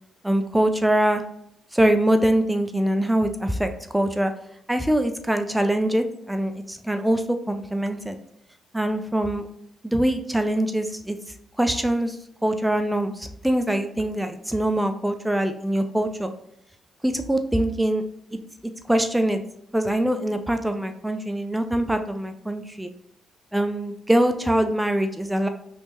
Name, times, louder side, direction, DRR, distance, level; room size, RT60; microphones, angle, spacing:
voice 1, 0.2-1.2 1.7-4.3 4.7-8.2 8.7-9.5 9.8-11.2 11.6-12.2 12.4-16.3 17.0-18.0 18.9-19.4 19.7-22.9 23.5-25.5, right 1 dB, 5° right, 7 dB, 0.3 m, -23 dB
3.3 x 3.0 x 2.9 m, 0.74 s
cardioid pair, 90°, 0 cm